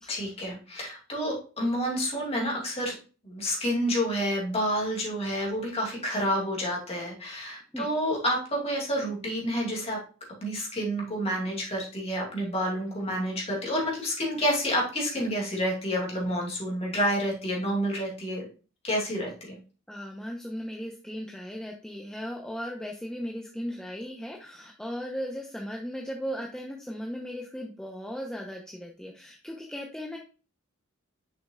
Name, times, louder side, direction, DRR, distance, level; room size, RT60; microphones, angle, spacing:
voice 1, 0.1-2.9 3.2-10.0 10.4-18.4 18.8-19.6, equal, 30° left, -2 dB, 2.6 m, -29 dB
voice 2, 19.9-30.2, equal, 5° left, -1 dB, 0.8 m, -37 dB
6.5 x 6.0 x 2.4 m, 0.34 s
head